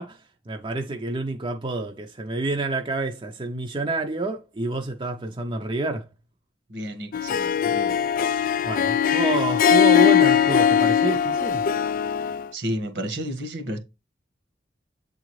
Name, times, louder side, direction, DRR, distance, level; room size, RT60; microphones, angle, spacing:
voice 1, 0.0-6.1 8.6-11.7, right 2 dB, 30° right, 0.7 m, -28 dB
voice 2, 6.7-8.0 12.5-13.8, equal, 70° right, 1.6 m, -31 dB
Harp, 7.1-12.5, left 8 dB, 50° left, 0.3 m, -20 dB
8.1 x 3.8 x 3.1 m
head